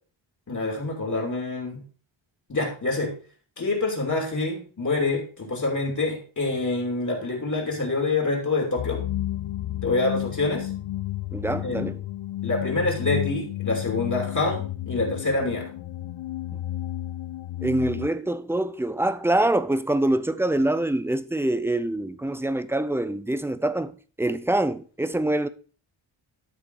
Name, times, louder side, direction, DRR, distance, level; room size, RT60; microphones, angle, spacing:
voice 1, 0.5-1.8 2.5-3.1 3.6-9.0 9.8-10.7 11.6-11.8 12.4-15.7, left 3 dB, 35° left, 2.8 m, -26 dB
sound 1, 8.8-18.1, left 14 dB, 85° left, 0.6 m, -32 dB
voice 2, 11.3-12.0 17.6-25.5, right 1 dB, 5° right, 0.4 m, -25 dB
12.0 x 5.3 x 4.7 m
wide cardioid pair, 170°, 48 cm